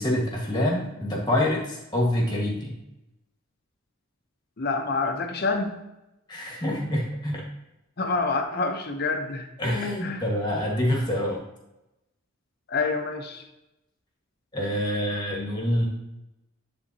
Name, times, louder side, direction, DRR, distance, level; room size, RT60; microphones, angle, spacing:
voice 1, 0.0-2.8 6.3-7.4 9.6-11.4 14.5-15.9, left 1 dB, 20° left, -2 dB, 1.4 m, -26 dB
voice 2, 4.6-5.7 8.0-9.5 10.0-10.3 12.7-13.4, left 3 dB, 45° left, 4 dB, 0.7 m, -27 dB
9.9 x 3.5 x 2.8 m, 0.93 s
head